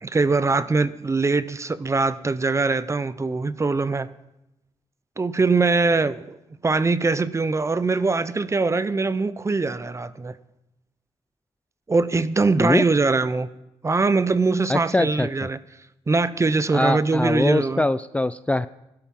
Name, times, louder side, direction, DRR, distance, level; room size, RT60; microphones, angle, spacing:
voice 1, 0.0-4.1 5.2-6.4 6.6-10.3 11.9-13.5 13.8-15.6 16.1-17.9, right 3 dB, 25° right, 0.8 m, -22 dB
voice 2, 14.7-15.3 16.7-18.7, left 2 dB, 10° left, 0.4 m, -22 dB
16.5 x 12.0 x 5.4 m
cardioid pair, 80°, 12 cm